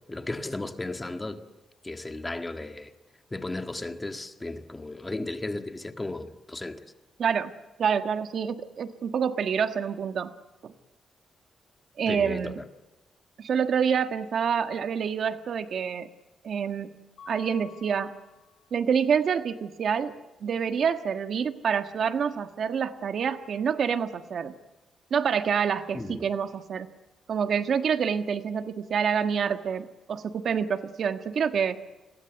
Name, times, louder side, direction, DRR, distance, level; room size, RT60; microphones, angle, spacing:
voice 1, 0.1-1.4 1.8-2.9 3.3-6.8 12.1-12.5 25.9-26.2, left 2 dB, 15° left, 1.7 m, -35 dB
voice 2, 7.2-7.5 7.8-10.3 10.6-10.7 12.0-12.6 13.4-16.1 16.4-16.9 17.3-18.1 18.7-20.1 20.4-24.5 25.1-26.9 27.3-31.8, right 7 dB, 60° right, 1.4 m, -27 dB
Mallet percussion, 17.2-19.0, left 6 dB, 55° left, 5.0 m, -50 dB
29.5 x 22.0 x 8.1 m
cardioid pair, 130°, 0 cm